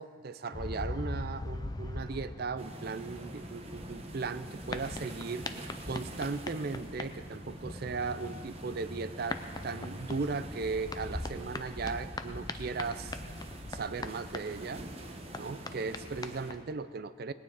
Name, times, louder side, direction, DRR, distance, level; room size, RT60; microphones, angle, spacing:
voice 1, 0.0-13.2 13.7-14.8 15.4-17.3, right 4 dB, 45° right, 14 dB, 0.4 m, -37 dB
sound 1, 0.5-16.6, left 2 dB, 20° left, 0.4 m, -42 dB
sound 2, 2.6-16.5, right 1 dB, 30° right, 0.9 m, -46 dB
19.0 x 9.3 x 4.9 m, 2.3 s
head